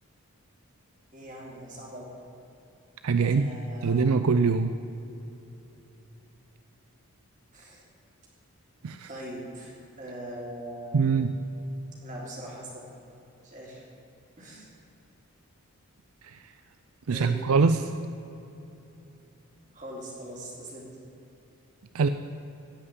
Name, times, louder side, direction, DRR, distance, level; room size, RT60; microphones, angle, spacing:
voice 1, 1.1-2.1 3.2-4.0 7.5-7.8 9.1-11.1 12.0-12.8 13.4-13.8 14.4-14.7 17.1-17.4 19.7-20.8, right 1 dB, 35° right, -4 dB, 3.4 m, -41 dB
voice 2, 3.0-3.5 3.8-4.7 8.8-9.1 10.9-11.3 16.2-16.4 17.1-17.9 21.9-22.1, right 5 dB, 75° right, 10 dB, 0.5 m, -23 dB
16.0 x 5.7 x 9.6 m, 2.9 s
head